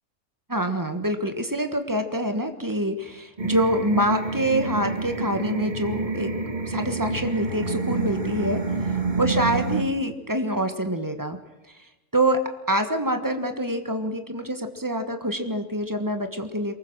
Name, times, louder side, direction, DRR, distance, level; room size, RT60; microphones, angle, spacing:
voice 1, 0.5-6.4 6.7-8.7 9.1-11.4 12.1-16.8, right 1 dB, 15° right, 7 dB, 1.3 m, -26 dB
sound 1, 3.4-9.8, right 3 dB, 30° right, 1.8 m, -28 dB
23.0 x 20.0 x 6.3 m, 1.1 s
omnidirectional pair, 1.6 m